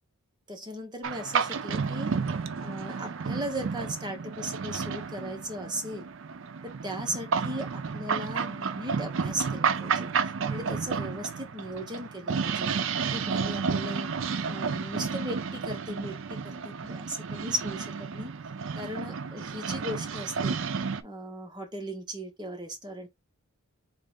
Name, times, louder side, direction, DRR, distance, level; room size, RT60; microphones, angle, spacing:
voice 1, 0.5-2.1 2.6-6.1 6.8-10.1 10.5-12.7 13.1-14.1 14.5-18.3 18.8-20.6 21.0-23.1, right 1 dB, 20° right, 1.0 m, -37 dB
sound 1, 1.0-21.0, right 5 dB, 55° right, 0.4 m, -31 dB
3.8 x 3.1 x 3.7 m
head